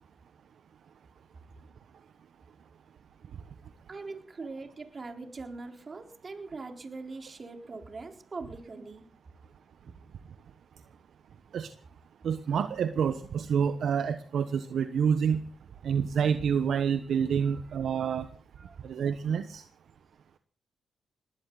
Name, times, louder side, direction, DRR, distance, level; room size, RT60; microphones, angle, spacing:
voice 1, 3.9-9.1 17.5-17.6 18.0-18.1 18.6-18.8, right 3 dB, 40° right, 4 dB, 3.9 m, -42 dB
voice 2, 12.2-15.4 15.8-18.3 18.8-19.6, right 7 dB, 70° right, 9 dB, 1.1 m, -28 dB
20.5 x 16.5 x 4.0 m, 0.41 s
cardioid pair, 70°, 0 cm